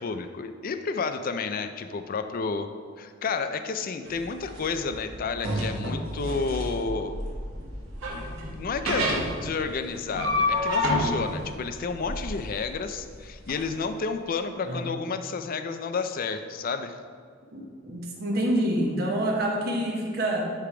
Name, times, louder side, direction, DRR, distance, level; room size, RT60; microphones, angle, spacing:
voice 1, 0.0-2.7 3.0-7.2 8.1-17.0, left 4 dB, 45° left, 9 dB, 0.4 m, -31 dB
sound 1, 4.0-13.6, left 1 dB, 80° right, 1.6 m, -29 dB
voice 2, 17.5-20.4, right 1 dB, 50° right, 0 dB, 1.2 m, -27 dB
9.9 x 3.4 x 4.9 m, 2.1 s
head